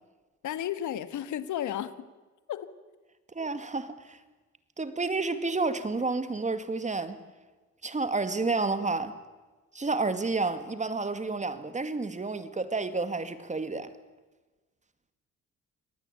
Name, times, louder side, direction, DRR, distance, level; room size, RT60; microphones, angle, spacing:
voice 1, 0.4-1.9 2.5-2.7, left 11 dB, 75° left, 1.5 m, -33 dB
voice 2, 3.3-4.2 4.8-7.2 7.8-9.1 9.7-13.9, right 3 dB, 25° right, 2.1 m, -30 dB
25.5 x 19.0 x 8.6 m
cardioid pair, 90°, 30 cm